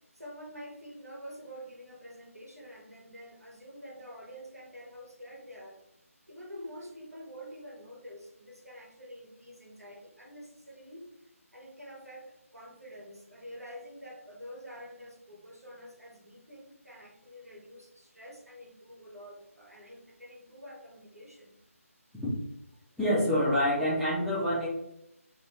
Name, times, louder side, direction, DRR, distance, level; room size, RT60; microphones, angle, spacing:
voice 1, 0.1-5.8 6.3-11.1 11.5-21.5, equal, 85° right, -1 dB, 1.1 m, -47 dB
voice 2, 23.0-24.7, equal, ahead, -11 dB, 0.4 m, -26 dB
2.9 x 2.8 x 3.0 m, 0.80 s
figure-of-eight pair, 155°, 8 cm